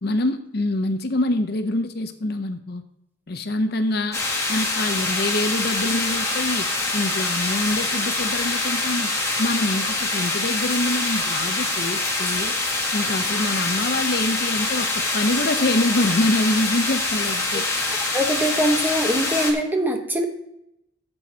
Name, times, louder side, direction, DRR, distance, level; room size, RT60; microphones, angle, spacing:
voice 1, 0.0-2.8 3.3-4.2 4.5-6.7 6.9-9.1 9.4-12.5 12.9-17.6, left 2 dB, 50° left, 8 dB, 0.7 m, -25 dB
sound 1, 4.1-19.5, left 2 dB, 15° left, 1.4 m, -25 dB
voice 2, 17.9-20.2, equal, 10° right, 3 dB, 1.0 m, -23 dB
13.0 x 7.8 x 2.8 m, 0.82 s
head